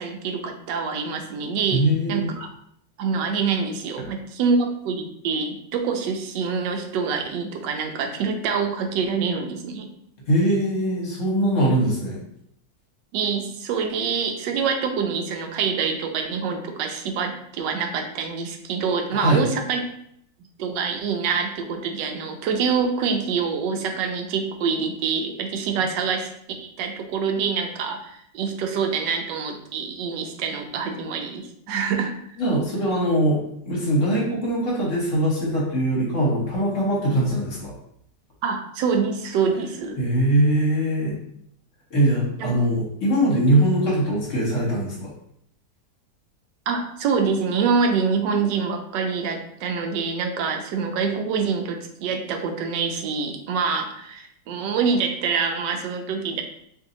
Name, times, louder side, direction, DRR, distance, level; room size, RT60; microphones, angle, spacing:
voice 1, 0.0-1.8 2.1-2.5 3.0-9.9 13.1-19.8 20.6-32.1 38.4-40.0 42.4-42.5 43.5-43.6 46.7-56.4, right 5 dB, 85° right, 5 dB, 1.2 m, -26 dB
voice 2, 1.7-2.3 10.3-12.2 19.1-19.4 32.4-37.7 40.0-41.2 41.9-45.1, right 1 dB, 50° left, -4 dB, 1.2 m, -22 dB
3.0 x 2.6 x 3.8 m, 0.71 s
omnidirectional pair, 1.9 m